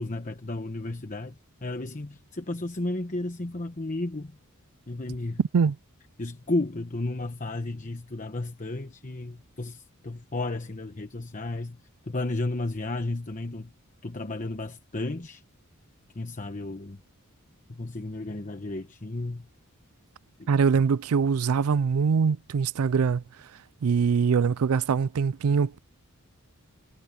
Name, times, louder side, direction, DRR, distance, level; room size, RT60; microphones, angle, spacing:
voice 1, 0.0-1.3 1.6-4.4 4.9-5.4 6.2-11.8 12.0-13.7 14.0-15.4 16.1-17.0 17.7-19.5 20.4-20.5, left 2 dB, 35° left, 1.0 m, -33 dB
voice 2, 5.4-5.8 20.5-23.2 23.8-25.8, right 6 dB, 80° right, 0.4 m, -23 dB
head